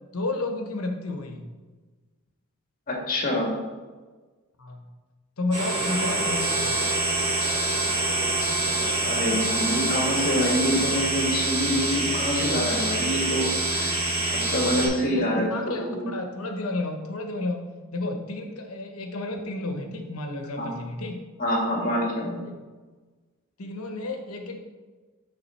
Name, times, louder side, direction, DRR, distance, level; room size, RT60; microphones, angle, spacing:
voice 1, 0.0-1.4 4.6-4.8 5.4-6.7 15.1-21.2 22.4-22.6 23.6-24.6, left 2 dB, 85° left, 4 dB, 1.0 m, -31 dB
voice 2, 2.9-3.6 9.0-14.0 14.3-15.8 20.6-20.7 21.4-22.4, equal, 40° left, -1 dB, 1.7 m, -26 dB
sound 1, 5.5-14.9, right 2 dB, 25° right, 1.9 m, -25 dB
7.1 x 3.9 x 5.6 m, 1.3 s
head